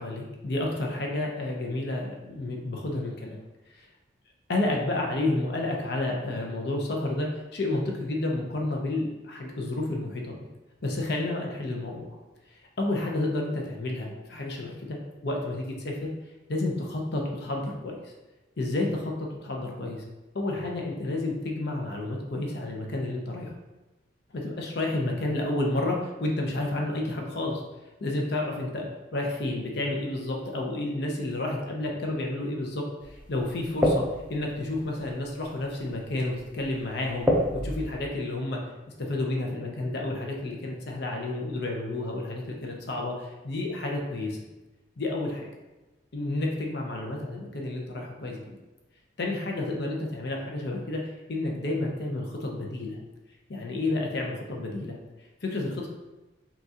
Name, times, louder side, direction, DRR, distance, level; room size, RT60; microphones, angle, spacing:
voice 1, 0.0-3.4 3.8-3.9 4.5-10.4 10.8-12.0 12.5-15.0 15.2-16.1 16.5-18.1 18.6-20.0 20.3-23.5 24.3-27.6 28.0-28.9 29.1-34.0 34.3-37.3 37.5-38.6 39.0-44.4 45.0-45.5 46.1-48.6 49.2-51.0 51.3-53.0 53.5-55.0 55.4-55.9, left 2 dB, 60° left, 0 dB, 0.7 m, -30 dB
sound 1, 33.0-38.0, left 1 dB, 5° right, 0.5 m, -30 dB
5.7 x 2.4 x 2.8 m, 1.1 s
head